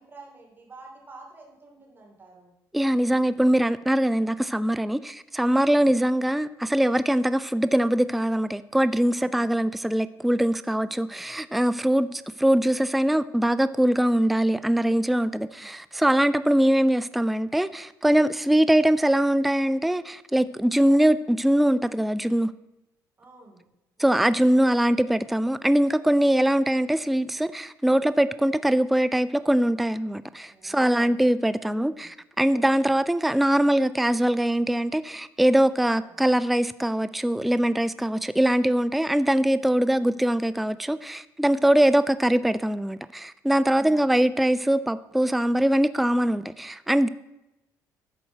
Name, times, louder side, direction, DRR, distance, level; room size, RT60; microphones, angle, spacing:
voice 1, 0.0-2.5 9.2-9.6 10.7-11.2 15.3-15.7 23.2-23.7 24.0-24.2 30.5-31.2 31.6-32.1 35.9-36.2 43.7-44.3, right 3 dB, 25° right, 3.0 m, -50 dB
voice 2, 2.7-22.5 24.0-47.1, right 1 dB, ahead, 0.3 m, -22 dB
11.0 x 4.3 x 7.2 m
cardioid pair, 90°, 8 cm